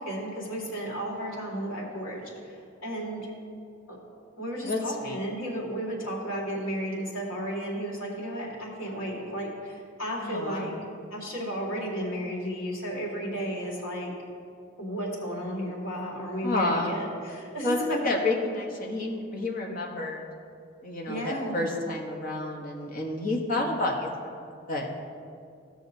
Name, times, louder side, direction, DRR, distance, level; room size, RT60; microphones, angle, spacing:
voice 1, 0.0-3.3 3.9-4.0 4.4-10.7 11.1-14.1 14.8-18.1 21.1-21.6, equal, 65° left, -3 dB, 2.3 m, -33 dB
voice 2, 4.6-5.2 10.2-10.7 16.4-17.0 17.6-20.2 20.8-24.9, left 2 dB, 40° left, 0 dB, 1.1 m, -30 dB
15.5 x 6.4 x 2.7 m, 2.4 s
head